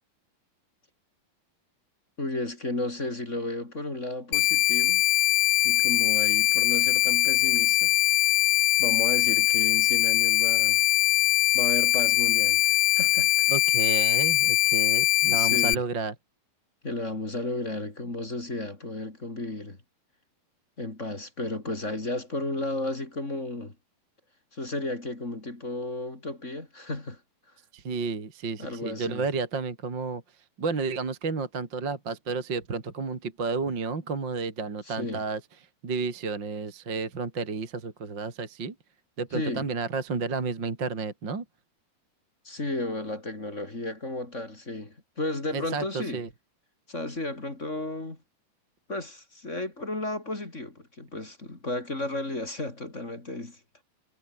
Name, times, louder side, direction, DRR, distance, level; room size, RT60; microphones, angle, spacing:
voice 1, 2.2-5.0 5.6-8.0 8.8-10.8 11.5-13.5 15.3-15.8 16.8-19.8 20.8-23.7 24.5-27.2 28.6-29.3 34.9-35.2 39.3-39.7 42.4-46.2 46.9-48.2 48.9-53.6, left 2 dB, 20° left, 3.5 m, -33 dB
sound 1, 4.3-15.7, left 17 dB, 80° left, 1.7 m, -22 dB
voice 2, 13.5-16.1 27.7-30.2 30.6-35.4 35.8-38.7 39.2-41.4 45.5-46.3, right 4 dB, 30° right, 3.4 m, -31 dB
omnidirectional pair, 4.5 m